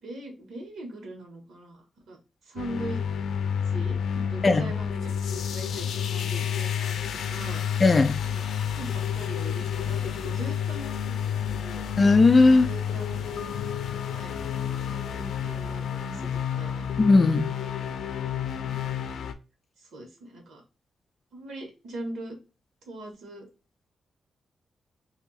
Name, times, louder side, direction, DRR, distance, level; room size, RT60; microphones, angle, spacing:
voice 1, 0.0-2.2 2.4-3.0 3.7-7.0 7.3-7.6 8.3-11.8 12.5-13.5 14.1-16.9 18.6-18.8 19.8-20.6 21.3-22.4 22.8-23.4, right 1 dB, 85° right, 1.4 m, -41 dB
sound 1, 2.6-19.3, left 8 dB, 85° left, 0.4 m, -30 dB
voice 2, 7.8-8.2 12.0-12.7 17.0-17.5, left 3 dB, 25° left, 0.3 m, -17 dB
2.8 x 2.8 x 3.9 m
wide cardioid pair, 175°, 0 cm